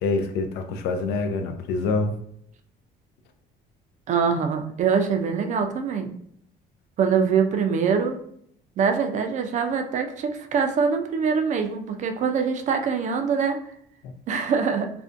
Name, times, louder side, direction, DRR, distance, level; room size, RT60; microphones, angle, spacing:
voice 1, 0.0-2.2 14.0-14.1, left 3 dB, 85° left, 6 dB, 0.4 m, -26 dB
voice 2, 4.1-6.1 7.0-8.2 8.8-13.6 14.3-14.9, right 6 dB, 45° right, 6 dB, 0.4 m, -23 dB
2.5 x 2.1 x 2.4 m, 0.68 s
cardioid pair, 110°, 17 cm